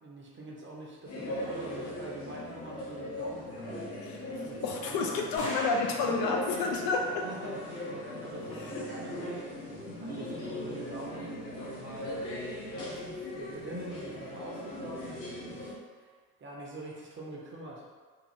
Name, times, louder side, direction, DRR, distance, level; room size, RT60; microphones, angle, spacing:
voice 1, 0.0-3.9 4.4-5.3 5.9-6.3 7.2-9.5 10.0-12.2 12.7-16.1 16.4-17.8, right 2 dB, 25° right, -3 dB, 0.7 m, -45 dB
sound 1, 1.0-15.7, left 1 dB, 85° left, 0.8 m, -39 dB
voice 2, 4.0-7.2 8.5-8.7, left 3 dB, 50° left, 1 dB, 0.5 m, -31 dB
sound 2, 5.4-6.9, left 1 dB, 35° left, 1.4 m, -41 dB
2.5 x 2.4 x 3.0 m, 1.5 s
hypercardioid pair, 60°, 46 cm